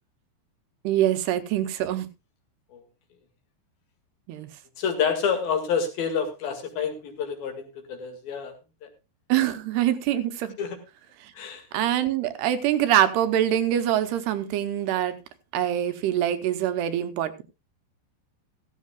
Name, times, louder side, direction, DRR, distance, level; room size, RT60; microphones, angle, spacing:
voice 1, 0.8-2.1 4.3-4.5 9.3-10.5 11.7-15.2 15.5-17.4, right 11 dB, 80° right, 2.8 m, -24 dB
voice 2, 4.8-8.5 8.8-8.9 10.6-10.8 11.4-11.6, left 6 dB, 60° left, 3.6 m, -28 dB
15.0 x 14.5 x 2.3 m
omnidirectional pair, 4.9 m